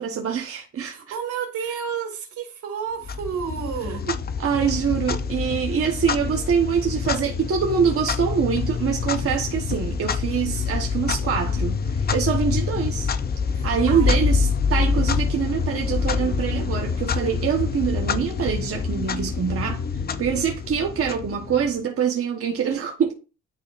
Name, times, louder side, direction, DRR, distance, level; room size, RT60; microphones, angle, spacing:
voice 1, 0.0-1.1 4.1-13.1 13.6-19.8 20.2-23.1, right 7 dB, 50° right, 1.2 m, -25 dB
voice 2, 0.8-4.1 13.5-14.2, right 7 dB, 80° right, 2.2 m, -31 dB
Clock, 3.0-21.8, left 5 dB, 30° left, 0.5 m, -26 dB
10.5 x 4.1 x 2.5 m
cardioid pair, 90°, 30 cm